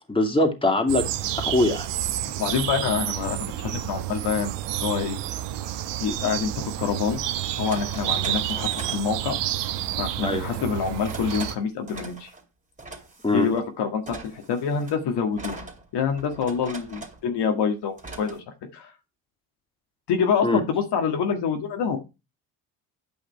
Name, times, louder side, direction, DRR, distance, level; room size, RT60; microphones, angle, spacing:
voice 1, 0.1-1.0 1.4-1.9 10.2-10.5 13.2-13.5 20.4-20.6, left 2 dB, 10° left, 3 dB, 2.6 m, -22 dB
sound 1, 0.9-11.5, right 13 dB, 70° right, 1.0 m, -30 dB
voice 2, 2.2-4.5 4.8-5.2 6.0-7.2 7.6-9.4 10.0-12.3 13.3-15.6 15.9-18.4 18.7-18.9 20.1-22.0, left 6 dB, 60° left, 4 dB, 1.8 m, -26 dB
sound 2, 4.8-5.0 6.6-6.7 7.4-9.1 10.6-11.6 11.9-12.4 12.8-13.6 14.1-17.3 18.0-18.4, right 2 dB, 15° right, 2.6 m, -40 dB
8.7 x 5.7 x 4.6 m, 0.26 s
supercardioid pair, 80°, 44 cm